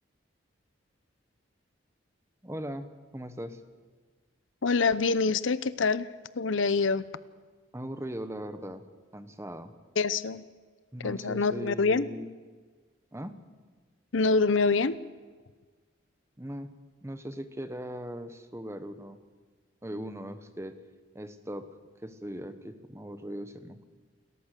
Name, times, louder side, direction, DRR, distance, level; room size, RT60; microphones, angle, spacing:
voice 1, 2.4-3.6 7.7-8.8 9.1-9.7 10.9-12.3 13.1-13.4 16.4-16.7 17.0-19.2 19.8-20.8 21.1-21.7 22.0-23.9, equal, 15° right, 10 dB, 1.1 m, -39 dB
voice 2, 4.6-6.1 6.4-7.0 10.0-10.5 11.0-12.1 14.1-15.0, left 4 dB, 80° left, 16 dB, 0.7 m, -25 dB
29.0 x 14.0 x 6.7 m, 1.5 s
head